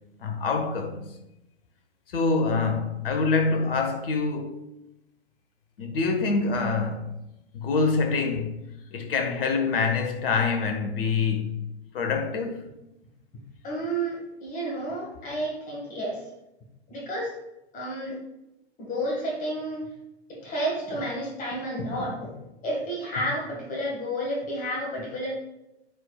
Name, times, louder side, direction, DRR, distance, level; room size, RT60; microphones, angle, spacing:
voice 1, 0.2-1.1 2.1-4.6 5.8-7.1 7.5-8.6 8.9-11.7 11.9-12.6, left 4 dB, 55° left, 1.1 m, -25 dB
voice 2, 13.6-16.2 16.9-17.3 17.7-18.2 18.8-19.9 20.3-22.2 22.6-25.3, right 1 dB, 25° left, 1.8 m, -31 dB
9.3 x 4.5 x 2.4 m
figure-of-eight pair, 100°, 34 cm